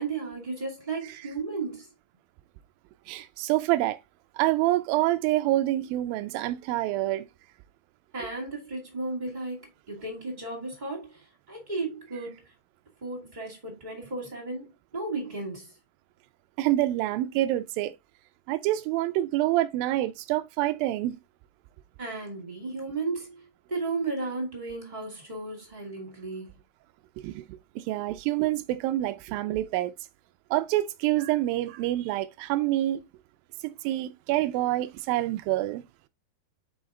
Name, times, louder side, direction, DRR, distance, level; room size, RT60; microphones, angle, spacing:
voice 1, 0.0-1.9 8.1-12.4 13.0-15.7 22.0-26.5, right 3 dB, 15° right, 1.7 m, -34 dB
voice 2, 3.1-4.0 4.4-7.3 16.6-17.9 18.5-21.2 27.2-29.9 30.5-33.0 33.6-35.8, right 15 dB, 85° right, 2.0 m, -27 dB
5.5 x 5.2 x 3.7 m
omnidirectional pair, 4.6 m